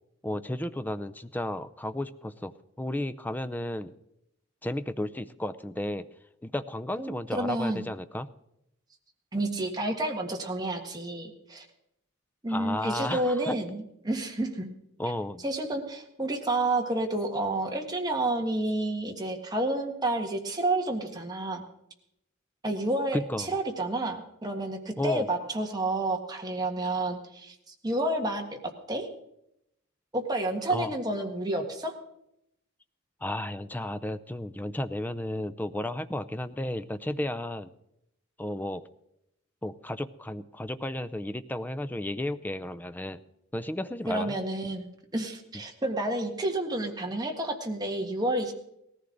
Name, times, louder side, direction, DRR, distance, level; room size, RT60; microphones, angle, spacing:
voice 1, 0.2-2.5 2.8-3.9 4.6-6.1 6.4-8.3 12.5-13.6 15.0-15.4 23.1-23.6 25.0-25.3 30.7-31.0 33.2-37.7 38.4-38.9 39.6-43.2 43.5-44.4, left 1 dB, 10° left, 12 dB, 0.5 m, -33 dB
voice 2, 7.0-7.8 9.3-11.6 12.4-14.7 15.4-21.6 22.6-27.5 27.8-28.5 28.9-29.1 30.1-31.9 44.1-44.9 45.1-48.5, right 2 dB, 20° right, 2 dB, 1.7 m, -30 dB
18.5 x 14.5 x 3.9 m, 0.82 s
head